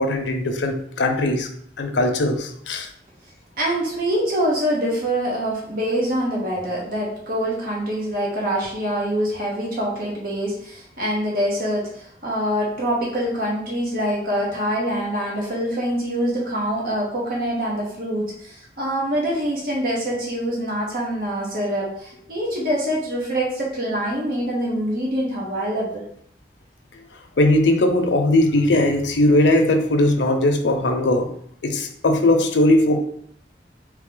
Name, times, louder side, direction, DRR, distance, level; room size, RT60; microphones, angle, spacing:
voice 1, 0.0-1.5 1.8-2.9 27.4-31.3 31.6-33.0, left 1 dB, 90° left, 5 dB, 0.6 m, -19 dB
voice 2, 3.6-26.0, equal, 50° right, -4 dB, 1.1 m, -25 dB
3.6 x 3.1 x 3.8 m, 0.66 s
head